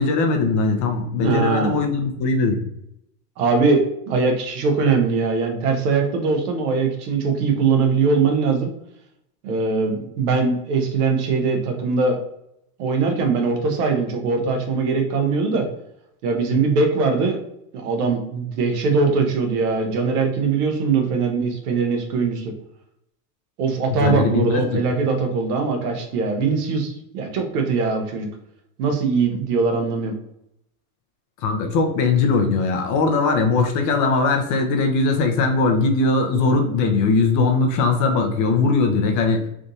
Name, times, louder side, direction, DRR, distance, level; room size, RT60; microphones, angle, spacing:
voice 1, 0.0-2.6 23.9-24.8 31.4-39.4, left 3 dB, 40° left, 4 dB, 0.7 m, -20 dB
voice 2, 1.2-1.8 3.4-8.7 9.4-12.2 12.8-15.7 16.2-17.4 17.7-22.5 23.6-28.3 28.8-30.1, right 4 dB, 75° right, 3 dB, 1.0 m, -21 dB
3.5 x 2.5 x 2.7 m, 0.78 s
supercardioid pair, 115°, 47 cm